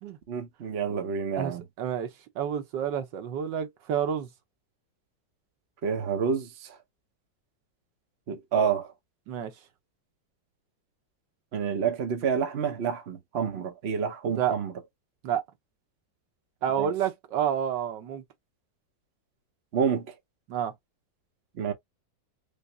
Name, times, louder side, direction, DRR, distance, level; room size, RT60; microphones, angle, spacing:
voice 1, 0.3-1.6 5.8-6.8 8.3-8.9 11.5-14.7 16.8-16.9 19.7-20.1 21.6-21.7, right 6 dB, 55° right, 0.7 m, -28 dB
voice 2, 1.4-2.1 2.4-4.3 9.3-9.5 14.3-14.5 15.2-15.4 16.6-18.2 20.5-20.7, right 9 dB, 80° right, 1.5 m, -29 dB
5.0 x 2.0 x 2.6 m
omnidirectional pair, 1.9 m